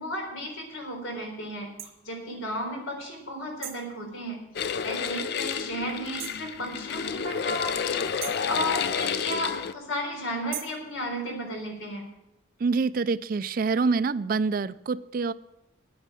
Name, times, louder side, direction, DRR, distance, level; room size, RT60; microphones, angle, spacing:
voice 1, 0.0-1.7 2.0-12.1, equal, 90° left, 1 dB, 4.1 m, -34 dB
sound 1, 1.8-1.9 3.6-3.9 6.2-6.5 8.2-8.5 10.5-10.8, right 11 dB, 90° right, 1.2 m, -38 dB
sound 2, 4.6-9.7, left 6 dB, 55° left, 0.4 m, -30 dB
voice 2, 12.6-15.3, right 4 dB, 45° right, 16 dB, 0.3 m, -26 dB
9.5 x 9.0 x 7.4 m, 0.89 s
head